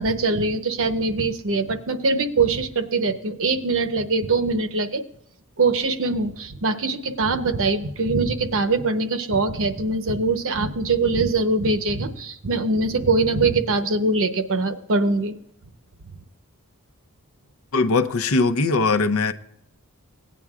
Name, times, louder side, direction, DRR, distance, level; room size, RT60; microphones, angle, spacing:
voice 1, 0.0-5.0 5.6-15.3, right 3 dB, 65° right, 0.9 m, -22 dB
voice 2, 17.7-19.3, left 3 dB, 70° left, 0.7 m, -20 dB
17.5 x 9.2 x 2.4 m
head